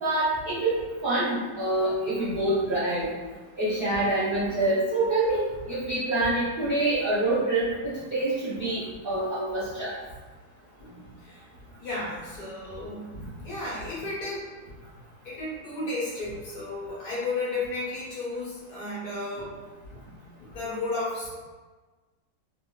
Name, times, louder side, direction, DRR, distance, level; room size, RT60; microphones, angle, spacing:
voice 1, 0.0-3.1 3.6-9.9, right 2 dB, 65° right, -10 dB, 0.5 m, -26 dB
voice 2, 1.9-2.7 8.5-8.6 10.8-11.5 11.8-13.1 13.4-14.5 15.2-19.6 19.9-21.3, left 2 dB, 55° left, -7 dB, 1.4 m, -34 dB
3.2 x 3.0 x 2.3 m, 1.3 s
omnidirectional pair, 2.0 m